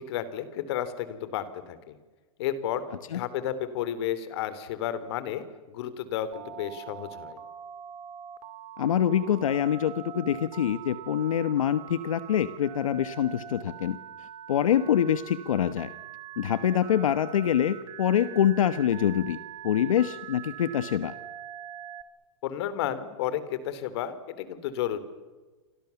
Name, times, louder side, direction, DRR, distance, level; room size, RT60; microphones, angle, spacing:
voice 1, 0.0-2.0 2.4-7.4 22.4-25.0, left 10 dB, 55° left, 13 dB, 3.5 m, -32 dB
Telephone, 6.3-22.0, right 10 dB, 30° right, 2.7 m, -43 dB
voice 2, 8.8-15.9 16.4-21.1, left 9 dB, 85° left, 12 dB, 1.3 m, -25 dB
29.5 x 26.0 x 7.2 m, 1.3 s
hypercardioid pair, 145°, 17 cm